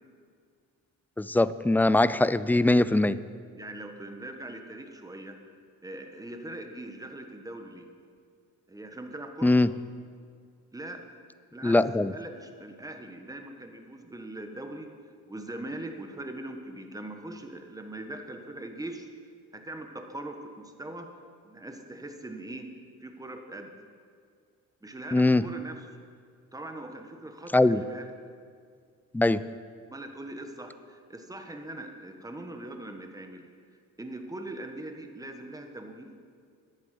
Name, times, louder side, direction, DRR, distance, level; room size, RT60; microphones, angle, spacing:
voice 1, 1.2-3.2 9.4-9.7 11.6-12.1 25.1-25.5 27.5-27.8 29.1-29.5, left 2 dB, 5° left, 15 dB, 0.3 m, -22 dB
voice 2, 3.6-5.4 5.8-7.9 8.7-9.6 10.7-11.0 11.5-11.8 12.1-14.9 15.3-19.1 19.5-21.1 21.4-22.7 23.0-23.7 24.8-25.9 26.5-28.1 29.9-33.5 34.0-36.2, right 1 dB, 10° right, 5 dB, 1.4 m, -41 dB
10.5 x 8.9 x 7.8 m, 2.2 s
cardioid pair, 90°, 30 cm